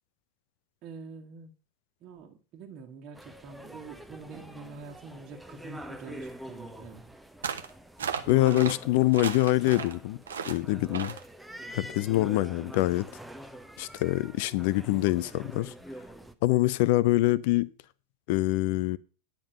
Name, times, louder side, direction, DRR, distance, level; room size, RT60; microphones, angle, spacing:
voice 1, 0.8-1.5 2.0-7.0, right 5 dB, 35° right, 1.6 m, -46 dB
sound 1, 3.1-16.3, equal, ahead, 0.8 m, -45 dB
sound 2, 7.4-7.7 8.0-8.8 9.1-9.9 10.3-10.6 10.9-11.2, right 7 dB, 65° right, 1.0 m, -34 dB
voice 2, 8.3-10.2 10.5-11.1 11.7-13.1 13.8-15.7 16.4-17.7 18.3-19.0, left 17 dB, 50° left, 0.6 m, -25 dB
10.5 x 5.4 x 6.7 m
figure-of-eight pair, 90°, 0 cm